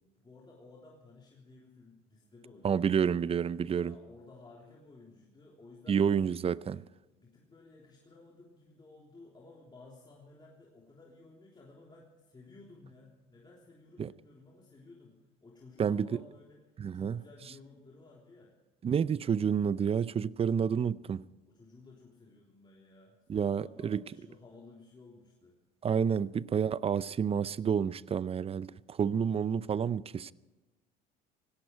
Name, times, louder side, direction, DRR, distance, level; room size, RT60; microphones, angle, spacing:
voice 1, 0.0-2.9 3.8-6.0 7.1-16.6 16.9-18.5 21.5-25.5, left 3 dB, 20° left, 3.5 m, -55 dB
voice 2, 2.6-3.9 5.9-6.8 14.0-14.1 15.8-16.1 16.8-17.2 18.8-21.2 23.3-24.0 25.8-30.3, right 7 dB, 30° right, 0.5 m, -29 dB
18.0 x 17.0 x 4.6 m
supercardioid pair, 80°, 20 cm